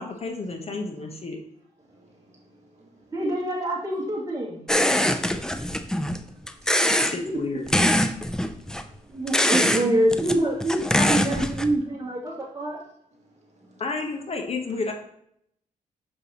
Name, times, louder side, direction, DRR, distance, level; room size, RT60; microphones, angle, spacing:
voice 1, 0.0-1.4 7.0-7.7 13.8-14.9, left 3 dB, 45° left, 3 dB, 1.0 m, -31 dB
voice 2, 1.9-3.0 5.4-6.9 8.2-8.6 8.9-9.0 13.2-13.8, right 1 dB, 50° right, 0 dB, 1.5 m, -59 dB
voice 3, 3.1-4.7 6.8-7.4 9.1-12.8, right 1 dB, 25° right, -5 dB, 2.7 m, -26 dB
sound 1, 4.7-6.2 6.5-7.2 7.7-8.8 9.3-9.8 10.1-11.7, left 1 dB, 5° left, 0.4 m, -23 dB
6.7 x 5.2 x 2.9 m, 0.71 s
cardioid pair, 85°, 15 cm